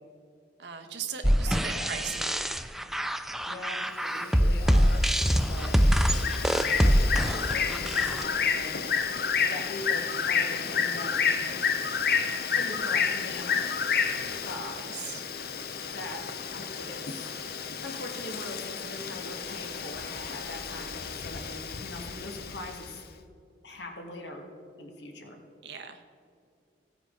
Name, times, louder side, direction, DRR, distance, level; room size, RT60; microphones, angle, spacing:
voice 1, 0.6-2.5 14.7-15.2 25.6-26.0, right 7 dB, 70° right, 6 dB, 1.1 m, -39 dB
voice 2, 1.2-2.0 3.4-5.2 5.5-6.1 6.7-11.3 12.6-13.7 14.4-15.0 15.9-16.2 16.5-23.0 23.6-24.4 24.8-25.4, left 2 dB, 80° left, 2 dB, 1.8 m, -41 dB
sound 1, 1.2-8.2, equal, ahead, 0.3 m, -24 dB
Bird, 4.2-22.9, left 6 dB, 60° left, 0.7 m, -31 dB
16.5 x 9.2 x 3.8 m, 2.4 s
head